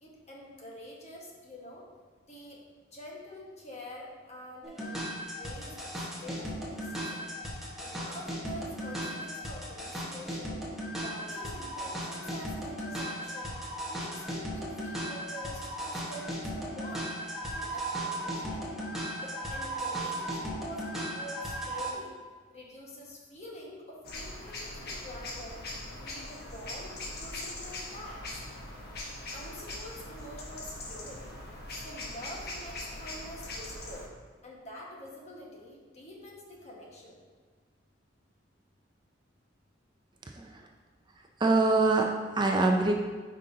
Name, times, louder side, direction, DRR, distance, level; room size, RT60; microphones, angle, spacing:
voice 1, 0.0-1.8 2.3-2.6 2.9-5.0 5.3-7.2 7.8-10.6 11.0-13.6 13.9-17.1 17.5-18.6 19.2-22.1 22.5-25.5 26.0-28.3 29.3-31.3 31.8-34.0 34.4-37.2, left 1 dB, 35° left, -3 dB, 1.4 m, -46 dB
sound 1, 4.6-21.9, right 1 dB, ahead, 1.2 m, -36 dB
sound 2, 24.0-34.1, left 2 dB, 55° left, 1.1 m, -41 dB
voice 2, 40.3-40.7 41.4-42.9, right 3 dB, 25° right, 2 dB, 0.4 m, -24 dB
9.0 x 5.3 x 2.7 m, 1.5 s
head